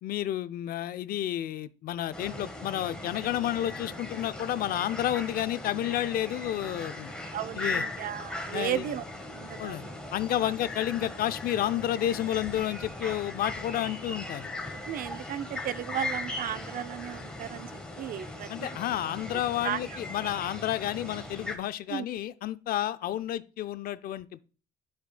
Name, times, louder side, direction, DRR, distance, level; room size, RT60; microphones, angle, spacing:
voice 1, 0.0-7.1 7.6-7.8 8.5-8.9 9.6-9.8 10.1-14.5 18.5-24.4, left 12 dB, 60° left, 0.5 m, -31 dB
sound 1, 2.1-21.6, left 2 dB, 5° left, 1.4 m, -39 dB
voice 2, 7.3-9.0 9.3-9.9 10.4-10.5 14.7-18.7 19.6-19.8 21.9-22.0, right 10 dB, 55° right, 0.5 m, -35 dB
11.0 x 5.1 x 2.2 m
cardioid pair, 110°, 17 cm